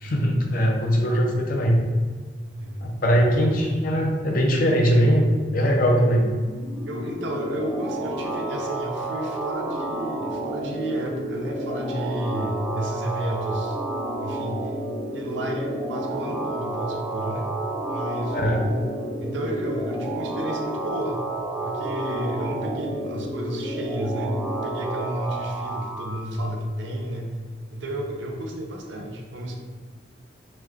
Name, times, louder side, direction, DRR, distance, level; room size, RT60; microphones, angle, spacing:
voice 1, 0.0-1.8 2.8-5.3 5.5-6.3 18.3-18.6, equal, 50° left, 1 dB, 0.5 m, -21 dB
voice 2, 2.6-2.9 3.4-3.7 4.9-5.2 6.9-13.8 14.2-14.7 15.1-17.5 17.9-21.2 21.6-27.3 27.7-29.6, equal, 80° right, 2 dB, 0.5 m, -32 dB
sound 1, 6.3-26.2, right 1 dB, 20° right, 0.6 m, -31 dB
3.1 x 2.2 x 3.5 m, 1.5 s
head